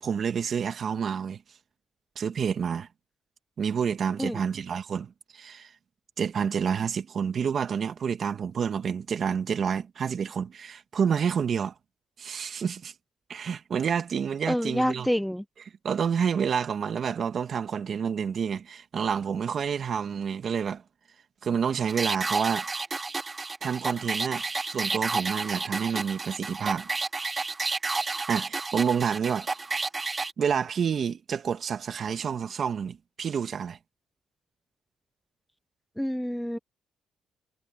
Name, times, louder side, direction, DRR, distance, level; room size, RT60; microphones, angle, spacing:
voice 1, 0.0-1.4 2.1-2.9 3.6-5.7 6.2-11.7 12.2-12.9 13.3-15.1 15.8-20.8 21.4-22.7 23.6-24.4 24.7-26.9 28.3-29.6 30.4-33.8, right 7 dB, 55° right, 1.6 m, -29 dB
voice 2, 14.5-15.4 36.0-36.6, equal, ahead, 0.9 m, -27 dB
sound 1, 21.9-30.3, right 3 dB, 25° right, 1.1 m, -31 dB
cardioid pair, 90°, 0 cm